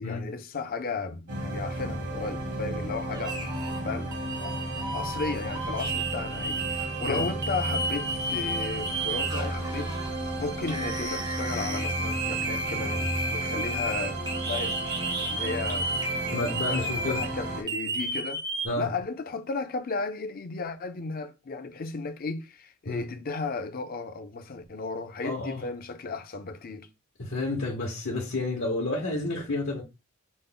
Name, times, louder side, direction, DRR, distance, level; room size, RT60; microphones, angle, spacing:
voice 1, 0.0-3.6 3.8-4.2 4.4-9.9 10.4-14.8 15.3-18.4 18.8-26.9, left 4 dB, 45° left, 0.6 m, -35 dB
sound 1, 1.3-17.6, right 1 dB, 60° right, 1.2 m, -33 dB
sound 2, 3.1-3.8 4.1-10.1 10.7-17.3 17.7-18.7, right 2 dB, 20° right, 0.6 m, -33 dB
voice 2, 16.3-17.2 18.6-18.9 22.9-23.0 25.2-25.6 27.2-29.8, left 2 dB, 75° left, 1.0 m, -30 dB
5.1 x 2.1 x 3.7 m
head